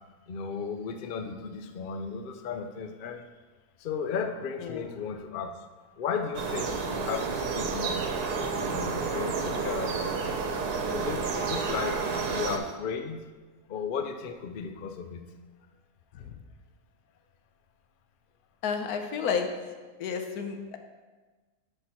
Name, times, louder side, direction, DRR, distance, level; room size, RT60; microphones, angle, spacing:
voice 1, 0.3-3.2 3.8-5.7 6.0-8.0 8.6-10.4 10.9-13.3 13.7-15.2 16.2-16.3, left 6 dB, 65° left, 6 dB, 0.5 m, -35 dB
sound 1, 6.3-12.6, right 4 dB, 85° right, 1.3 m, -30 dB
voice 2, 18.6-19.5 20.0-20.8, left 6 dB, 80° left, 6 dB, 1.3 m, -31 dB
10.5 x 4.5 x 4.2 m, 1.3 s
omnidirectional pair, 1.6 m